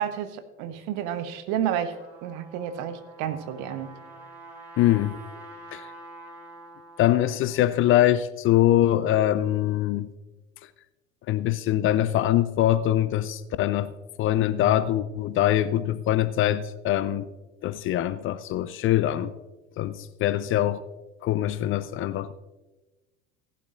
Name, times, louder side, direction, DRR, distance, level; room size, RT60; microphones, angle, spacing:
voice 1, 0.0-2.0 2.2-3.9, right 9 dB, 55° right, 10 dB, 1.2 m, -30 dB
Trumpet, 1.9-7.6, right 2 dB, 5° right, 4.5 m, -46 dB
voice 2, 4.8-5.2 5.7-5.9 7.0-10.1 11.3-13.9 14.2-17.3 17.6-19.3 19.8-20.8 21.2-22.3, left 13 dB, 35° left, 15 dB, 0.5 m, -23 dB
16.5 x 11.5 x 2.5 m, 1.1 s
figure-of-eight pair, 70°, 37 cm